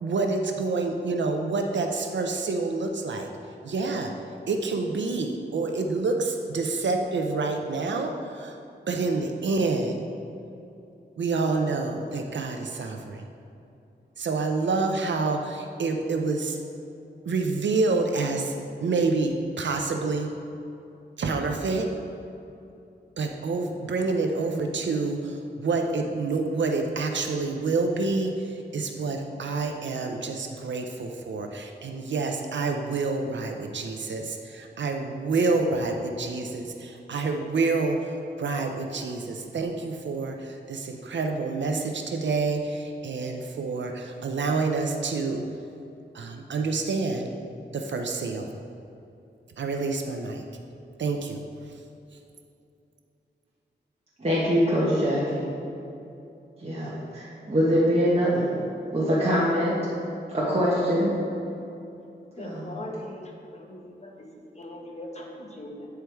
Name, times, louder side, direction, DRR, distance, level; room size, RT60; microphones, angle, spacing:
voice 1, 0.0-3.3 3.6-4.1 4.5-8.6 8.9-10.0 11.2-13.2 14.2-16.6 17.2-18.6 18.8-20.3 21.2-21.9 23.2-45.5 46.1-47.3 47.7-48.5 49.6-50.4 51.0-51.5, right 3 dB, 75° right, 4 dB, 0.5 m, -28 dB
voice 2, 54.2-55.5 56.6-58.5 58.9-59.8 60.3-61.1 62.4-62.8, equal, 35° right, -7 dB, 1.2 m, -23 dB
voice 3, 62.4-64.3 64.5-65.9, left 1 dB, 35° left, 0 dB, 1.1 m, -40 dB
9.0 x 4.6 x 3.4 m, 2.7 s
wide cardioid pair, 75°, 19 cm